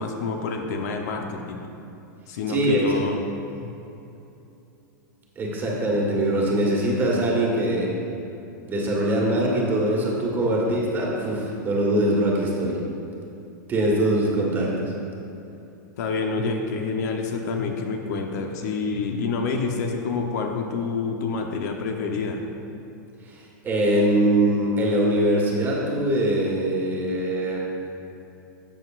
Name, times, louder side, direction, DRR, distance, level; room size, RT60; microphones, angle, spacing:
voice 1, 0.0-1.6 2.3-3.2 3.6-3.7 16.0-22.4, left 4 dB, 55° left, 3 dB, 0.9 m, -27 dB
voice 2, 2.5-3.0 5.3-7.9 8.7-12.8 13.7-14.7 23.2-27.6, right 1 dB, 20° right, -3 dB, 1.6 m, -22 dB
13.0 x 7.9 x 2.5 m, 2.8 s
supercardioid pair, 150°, 11 cm